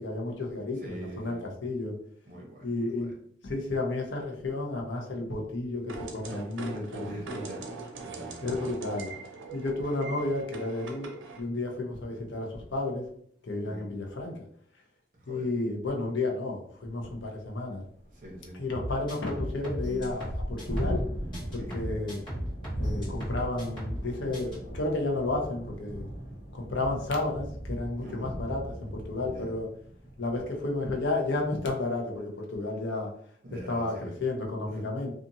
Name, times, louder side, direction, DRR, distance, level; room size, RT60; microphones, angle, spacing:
voice 1, 0.0-1.9 2.6-3.1 3.4-7.5 8.4-9.1 9.5-13.0 13.4-14.4 15.3-17.8 18.5-21.0 21.5-22.2 22.8-26.1 26.5-29.7 30.2-33.1 33.7-35.1, left 2 dB, 75° left, 1 dB, 0.7 m, -32 dB
voice 2, 0.8-1.5 2.3-3.1 6.7-7.7 8.0-8.7 13.6-13.9 15.2-15.5 18.1-18.6 21.6-21.9 28.0-28.3 29.3-29.5 33.4-34.2 34.7-34.8, right 1 dB, 45° right, 0 dB, 0.8 m, -44 dB
sound 1, 5.9-11.4, right 3 dB, 90° right, 0.5 m, -41 dB
Thunderstorm, 17.2-17.3 17.7-17.8 18.0-31.7, equal, 45° left, 1.3 m, -39 dB
sound 2, 18.7-21.1 21.3-24.1 24.3-24.6, equal, 25° left, 1.3 m, -36 dB
2.7 x 2.4 x 2.6 m, 0.62 s
head